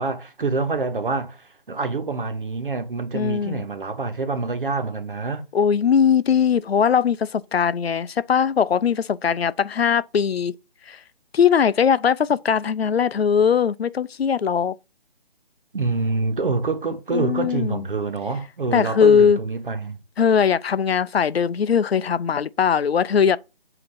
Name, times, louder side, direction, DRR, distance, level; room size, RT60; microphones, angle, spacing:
voice 1, 0.0-1.4 1.7-5.5 15.7-20.0, right 3 dB, 60° right, 1.3 m, -26 dB
voice 2, 3.1-3.6 5.5-10.5 10.9-11.0 11.3-14.7 17.1-17.8 18.7-19.4 20.2-23.4, left 7 dB, 80° left, 0.6 m, -20 dB
7.8 x 2.9 x 6.1 m
hypercardioid pair, 175°, 30 cm